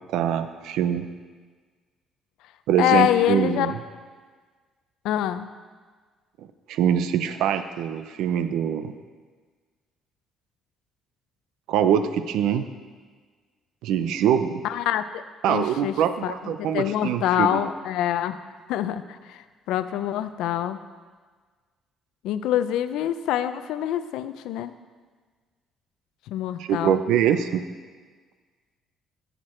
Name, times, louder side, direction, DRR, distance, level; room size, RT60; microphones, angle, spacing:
voice 1, 0.1-1.1 2.7-3.7 6.7-8.9 11.7-12.6 13.8-14.6 15.4-17.7 26.6-27.6, right 9 dB, 85° right, 10 dB, 0.6 m, -23 dB
voice 2, 2.8-3.7 5.0-5.5 14.6-15.2 15.5-15.9 16.2-18.4 18.7-20.8 22.2-24.7 26.3-27.0, left 11 dB, 85° left, 12 dB, 0.5 m, -25 dB
16.0 x 6.6 x 4.4 m, 1.5 s
cardioid pair, 155°, 0 cm